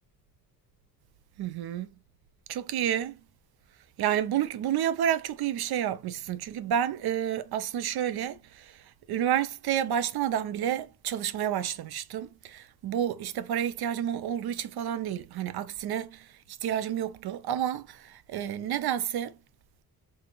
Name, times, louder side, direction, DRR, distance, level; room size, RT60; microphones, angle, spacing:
voice 1, 1.4-1.9 2.5-3.2 4.0-19.4, right 10 dB, 80° right, 0.5 m, -30 dB
3.6 x 2.5 x 2.9 m
cardioid pair, 95°, 38 cm